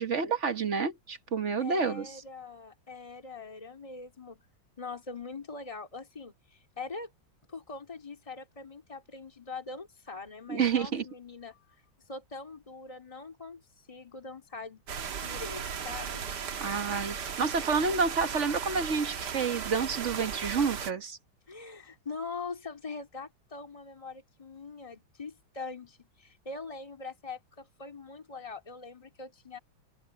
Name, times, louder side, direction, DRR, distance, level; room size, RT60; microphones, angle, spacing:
voice 1, 0.0-2.1 10.5-11.0 16.6-21.2, right 5 dB, 40° right, 1.5 m, -29 dB
voice 2, 1.6-4.4 4.8-7.1 7.5-11.6 12.1-13.6 13.9-16.3 21.5-29.6, left 4 dB, 15° left, 2.8 m, -42 dB
sound 1, 14.9-20.9, right 7 dB, 60° right, 1.9 m, -36 dB
omnidirectional pair, 2.2 m